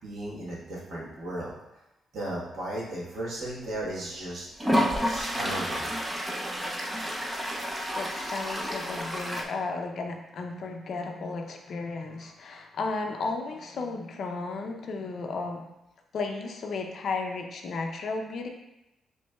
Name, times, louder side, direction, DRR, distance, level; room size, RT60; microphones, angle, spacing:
voice 1, 0.0-1.5 2.1-4.5 4.7-6.0, right 1 dB, 60° right, -5 dB, 1.3 m, -35 dB
Toilet flush, 3.6-3.7 4.6-9.4, equal, 10° right, 0.5 m, -30 dB
voice 2, 7.9-15.6 16.1-18.5, left 3 dB, 50° left, 3 dB, 0.5 m, -34 dB
6.3 x 3.1 x 2.3 m, 0.93 s
cardioid pair, 155°, 0 cm